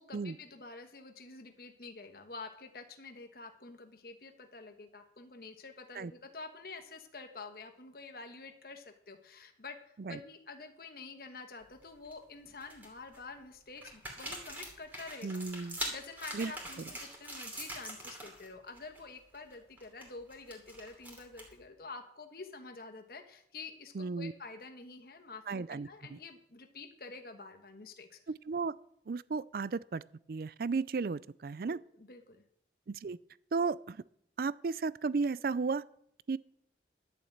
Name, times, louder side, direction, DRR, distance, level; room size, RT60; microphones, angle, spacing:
voice 1, 0.0-15.3 15.9-28.2 31.7-32.4, left 3 dB, 55° left, 6 dB, 1.2 m, -48 dB
sound 1, 11.6-12.1 12.6-13.2 13.8-18.5 18.7-19.0 19.3-21.6, right 1 dB, 10° right, 2.7 m, -43 dB
voice 2, 15.2-15.8 16.3-16.5 16.8-16.9 23.9-24.3 25.5-26.2 28.3-28.7 29.1-30.0 30.3-31.8 32.9-33.2 33.5-34.0 34.4-35.8 36.3-36.4, right 4 dB, 55° right, 19 dB, 0.4 m, -34 dB
11.5 x 7.2 x 8.0 m, 0.70 s
head